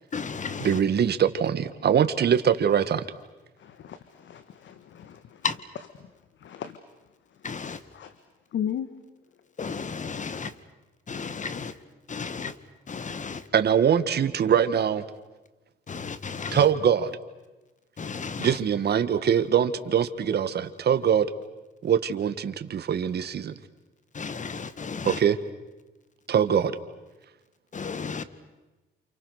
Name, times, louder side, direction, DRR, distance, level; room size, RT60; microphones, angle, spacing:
voice 1, 0.1-0.8 5.4-5.6 7.4-7.8 9.6-10.5 11.1-11.8 12.1-12.6 12.9-13.5 15.9-16.7 18.0-18.6 24.1-25.2 27.7-28.2, left 5 dB, 40° left, 1.9 m, -33 dB
voice 2, 0.6-3.0 13.5-15.0 16.5-17.1 18.4-21.3 21.8-23.5 25.0-25.4 26.3-26.7, right 8 dB, 55° right, 1.7 m, -23 dB
voice 3, 3.6-5.4 6.4-6.8 7.6-8.1 8.5-8.9, left 9 dB, 70° left, 1.6 m, -36 dB
29.5 x 28.0 x 6.6 m
cardioid pair, 90°, 20 cm